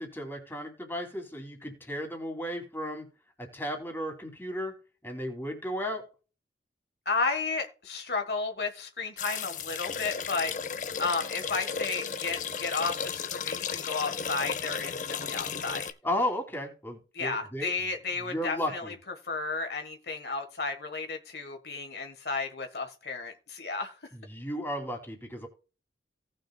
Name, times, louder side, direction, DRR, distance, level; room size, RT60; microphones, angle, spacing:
voice 1, 0.0-3.1 3.4-4.7 5.0-6.0 16.0-17.7 18.2-18.9 24.1-25.5, equal, 15° left, 2 dB, 2.8 m, -34 dB
voice 2, 7.0-15.9 17.1-18.9 19.2-24.0, left 4 dB, 65° left, 5 dB, 1.4 m, -33 dB
sound 1, 9.2-15.9, left 6 dB, 45° left, 0.7 m, -34 dB
18.0 x 6.4 x 2.3 m, 0.35 s
head